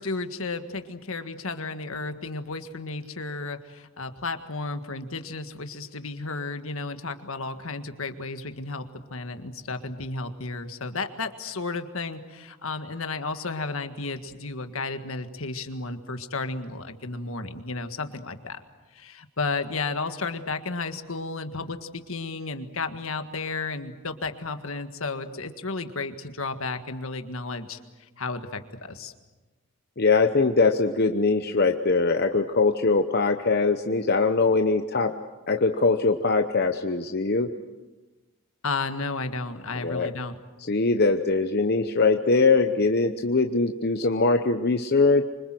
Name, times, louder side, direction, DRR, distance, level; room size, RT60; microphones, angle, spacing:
voice 1, 0.0-8.8 9.1-18.6 18.9-29.1 38.6-40.4, left 3 dB, 70° left, 8 dB, 1.7 m, -33 dB
voice 2, 30.0-35.1 35.5-37.5 39.8-40.1 40.7-45.3, left 3 dB, 45° left, 6 dB, 0.9 m, -22 dB
26.0 x 25.0 x 7.7 m, 1.2 s
head